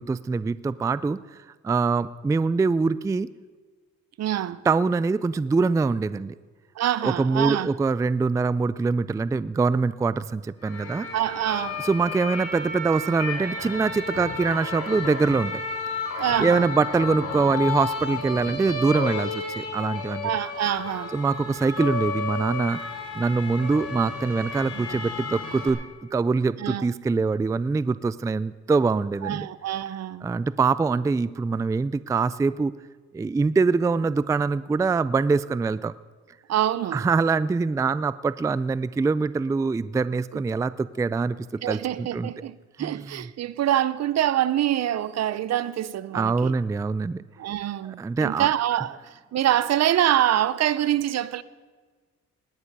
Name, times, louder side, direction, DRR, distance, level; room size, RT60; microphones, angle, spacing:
voice 1, 0.0-1.4 1.6-3.3 4.6-6.3 7.0-11.1 11.8-15.5 16.4-20.3 21.1-22.8 23.1-25.8 26.1-29.5 30.2-32.7 33.1-35.9 36.9-41.4 41.7-42.3 42.8-43.2 46.1-47.2 47.8-48.5, right 4 dB, 10° right, 0.3 m, -24 dB
voice 2, 4.2-4.6 6.8-7.7 11.1-11.8 16.2-16.7 20.2-21.1 24.7-24.8 26.6-26.8 29.2-30.3 36.5-37.0 40.3-40.4 41.6-46.5 47.4-49.0 49.3-51.4, right 12 dB, 60° right, 0.7 m, -25 dB
sound 1, 10.6-25.7, left 4 dB, 55° left, 3.3 m, -32 dB
19.5 x 9.7 x 5.4 m
cardioid pair, 90°, 30 cm